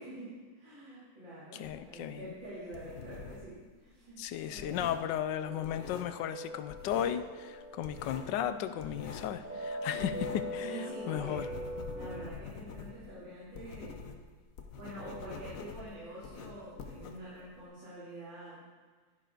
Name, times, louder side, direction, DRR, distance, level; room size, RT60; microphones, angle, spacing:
voice 1, 0.0-4.2 4.5-5.1 9.8-11.4 11.9-14.0 14.8-18.6, right 1 dB, 70° right, -11 dB, 3.8 m, -46 dB
voice 2, 1.5-2.3 4.2-11.5, left 10 dB, 75° left, 11 dB, 1.1 m, -35 dB
sound 1, 1.6-3.6 3.8-6.4 6.7-7.3 7.5-10.6 10.9-17.6, left 5 dB, 55° left, 1.1 m, -46 dB
sound 2, 5.4-12.3, left 1 dB, 40° right, 0.7 m, -42 dB
12.0 x 11.0 x 3.9 m, 1.4 s
omnidirectional pair, 2.1 m